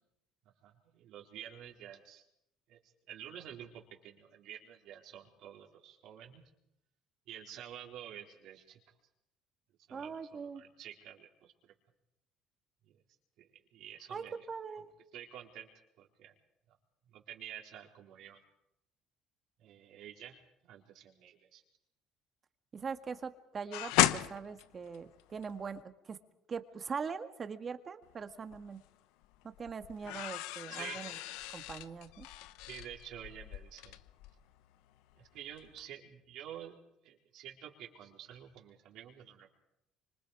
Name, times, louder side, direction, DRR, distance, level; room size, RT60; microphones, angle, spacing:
voice 1, 0.6-2.2 2.7-2.8 3.1-6.4 7.3-8.8 9.9-11.7 12.8-13.0 13.4-14.4 15.1-15.7 16.0-16.3 16.7-16.8 17.1-18.4 19.6-21.6 30.6-31.0 32.6-34.0 35.2-36.8 37.0-39.5, right 10 dB, 70° right, 1 dB, 4.0 m, -49 dB
voice 2, 9.9-10.6 14.1-14.9 22.7-26.2 26.5-28.8 29.6-31.1 31.5-32.3, right 5 dB, 35° right, 9 dB, 1.9 m, -42 dB
sound 1, 23.7-25.8 28.0-28.9 29.2-35.3 35.5-35.8, left 15 dB, 80° left, 0.8 m, -35 dB
25.5 x 25.0 x 5.0 m, 0.81 s
supercardioid pair, 85°, 0 cm